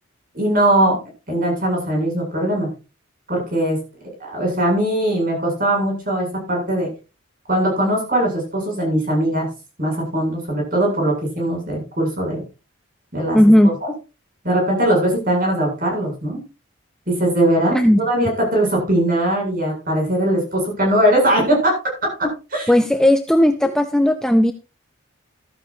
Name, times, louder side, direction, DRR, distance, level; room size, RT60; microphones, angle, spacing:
voice 1, 0.3-1.0 1.3-2.7 3.3-3.8 4.2-6.9 7.5-9.5 9.8-12.4 13.1-13.4 13.8-13.9 14.4-16.4 17.1-21.8 22.2-22.7, right 1 dB, 45° right, 0 dB, 8.0 m, -20 dB
voice 2, 13.3-13.7 17.7-18.0 22.7-24.5, left 1 dB, 5° left, 7 dB, 0.5 m, -15 dB
15.0 x 13.5 x 2.8 m, 0.31 s
head